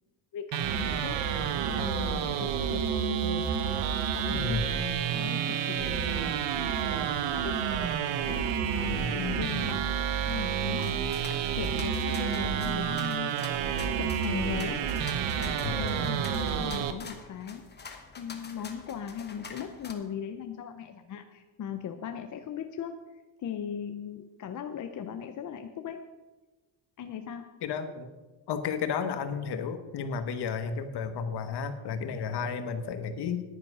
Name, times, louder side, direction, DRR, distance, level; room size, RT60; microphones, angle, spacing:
voice 1, 0.3-1.2 1.7-3.6 4.1-6.8 7.3-7.9 8.2-9.8 10.3-10.9 11.5-13.4 13.8-14.8 15.4-17.6 18.2-22.9 23.4-26.0 27.0-27.5, left 8 dB, 40° left, 6 dB, 0.6 m, -38 dB
sound 1, 0.5-16.9, right 8 dB, 70° right, 1.0 m, -29 dB
voice 2, 4.3-4.6 8.9-9.1 15.6-15.9 27.6-28.1 28.5-33.4, left 6 dB, 55° left, 9 dB, 1.2 m, -32 dB
sound 2, 10.8-19.9, left 4 dB, 20° left, 1.0 m, -46 dB
10.5 x 9.4 x 5.5 m, 1.2 s
cardioid pair, 160°, 47 cm